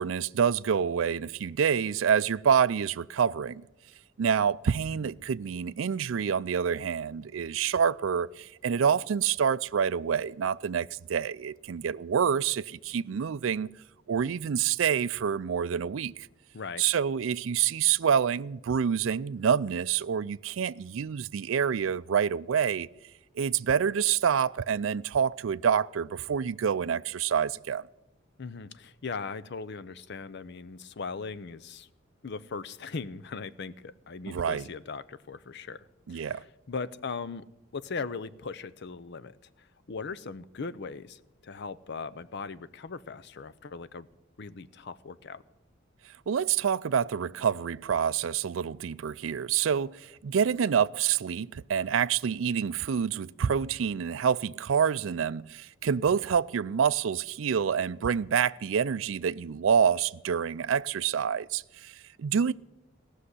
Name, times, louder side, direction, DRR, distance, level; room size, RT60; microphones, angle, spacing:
voice 1, 0.0-3.6 4.2-13.7 14.1-16.3 16.8-22.9 23.4-27.8 34.3-34.7 36.1-36.4 46.3-62.5, right 7 dB, 75° right, 0.4 m, -27 dB
voice 2, 28.4-31.9 32.2-36.3 36.7-37.4 37.7-44.1 44.4-45.4, left 4 dB, 60° left, 0.6 m, -39 dB
17.5 x 6.4 x 9.8 m
head